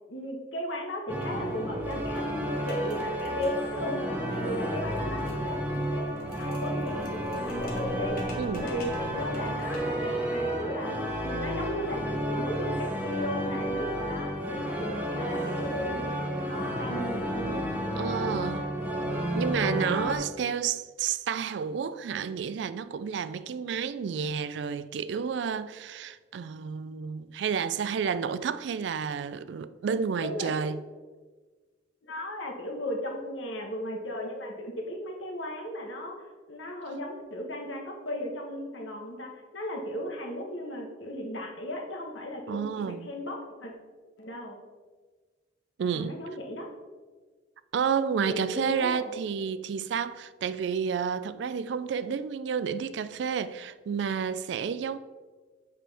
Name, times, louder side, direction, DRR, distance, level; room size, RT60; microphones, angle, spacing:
voice 1, 0.1-4.0 4.3-8.2 8.5-11.0 11.2-16.2 16.5-18.1 30.2-30.6 32.0-43.7 44.2-44.6 45.9-46.7 48.2-49.2, left 1 dB, 80° left, 1.2 m, -36 dB
sound 1, 1.1-1.3 1.6-1.7 1.9-10.1, left 1 dB, 50° left, 1.2 m, -47 dB
sound 2, 1.1-20.2, equal, 10° right, 0.9 m, -31 dB
voice 2, 18.0-18.7 19.3-30.8 42.5-43.1 45.8-46.2 47.7-55.0, right 6 dB, 65° right, 0.3 m, -30 dB
7.5 x 5.1 x 3.4 m
head